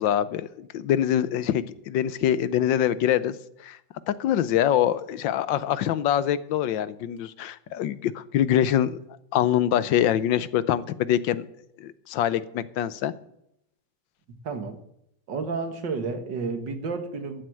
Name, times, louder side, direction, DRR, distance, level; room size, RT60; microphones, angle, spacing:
voice 1, 0.0-3.3 3.6-3.8 4.1-9.0 9.3-11.4 11.8-13.1, left 10 dB, 85° left, 1.5 m, -24 dB
voice 2, 14.4-14.8 15.3-17.4, right 4 dB, 75° right, 2.3 m, -31 dB
14.0 x 7.9 x 7.7 m
omnidirectional pair, 2.0 m